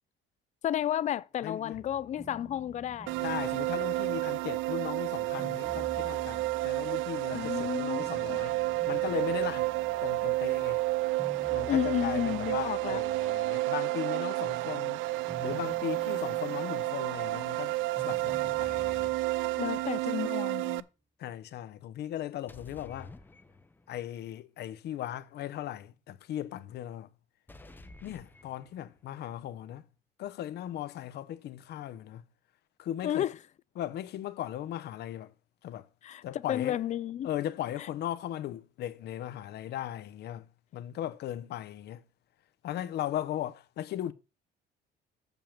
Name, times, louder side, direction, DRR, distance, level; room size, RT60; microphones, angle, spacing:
voice 1, 0.6-3.1 7.3-8.4 11.7-13.0 19.6-20.8 33.0-33.3 36.0-37.3 37.8-37.9, left 11 dB, 40° left, 0.4 m, -32 dB
voice 2, 1.4-1.8 3.2-8.6 8.9-9.7 10.0-10.8 11.5-15.0 15.4-19.1 21.2-23.1 23.9-27.1 28.0-29.8 30.2-32.2 32.8-33.3 33.8-35.3 35.6-35.9 36.2-36.8 37.2-40.4 40.7-42.0 42.6-44.1, left 12 dB, 60° left, 0.9 m, -37 dB
sound 1, 1.7-13.7 14.1-20.5, right 2 dB, 15° right, 0.8 m, -50 dB
sound 2, 3.1-20.8, right 18 dB, 90° right, 0.5 m, -31 dB
sound 3, 18.5-19.2 22.5-24.0 27.5-29.1, left 2 dB, 10° left, 0.7 m, -52 dB
7.5 x 5.4 x 7.2 m
cardioid pair, 155°, 19 cm